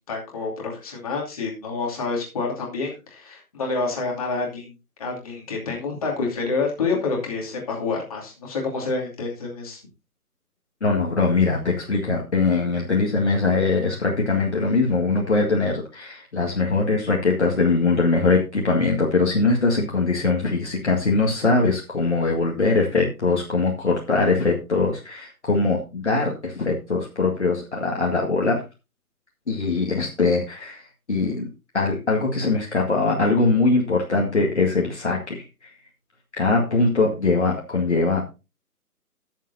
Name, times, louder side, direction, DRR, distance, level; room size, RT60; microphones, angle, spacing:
voice 1, 0.0-4.7 5.0-9.8, left 4 dB, 25° left, -1 dB, 2.6 m, -28 dB
voice 2, 10.8-28.6 29.5-31.5 31.7-35.7 36.4-38.4, left 3 dB, 45° left, -1 dB, 1.9 m, -22 dB
18.5 x 7.4 x 2.7 m, 0.29 s
figure-of-eight pair, 150°, 46 cm